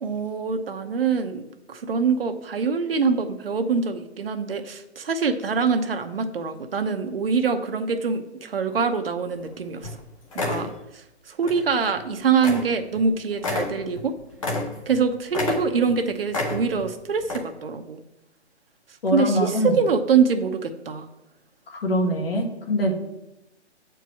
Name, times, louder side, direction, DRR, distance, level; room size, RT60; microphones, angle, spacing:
voice 1, 0.0-9.9 10.3-14.1 14.9-18.0 19.1-21.0, right 5 dB, 55° right, 6 dB, 0.9 m, -24 dB
sound 1, 9.4-9.5 9.8-10.0 10.3-10.7 11.4-11.6 12.0-12.1 12.4-12.7 13.0-13.1 13.4-15.0 15.3-16.0 16.3-16.9 17.2-17.4, left 3 dB, 30° left, 1.2 m, -29 dB
voice 2, 19.0-19.8 21.7-22.9, equal, 55° left, 1 dB, 1.8 m, -23 dB
8.2 x 4.7 x 7.1 m, 0.91 s
hypercardioid pair, 165°, 35 cm